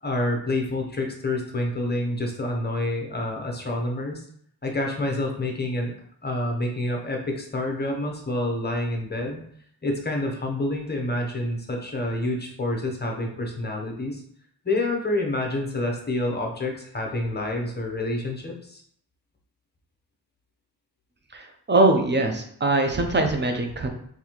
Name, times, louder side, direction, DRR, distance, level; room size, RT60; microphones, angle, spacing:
voice 1, 0.0-4.2 4.6-5.9 6.2-9.4 9.8-14.2 14.6-18.8, left 1 dB, 25° left, 1 dB, 0.7 m, -28 dB
voice 2, 21.3-23.9, right 2 dB, 30° right, 4 dB, 0.5 m, -22 dB
4.0 x 2.7 x 2.9 m, 0.65 s
wide cardioid pair, 125°, 40 cm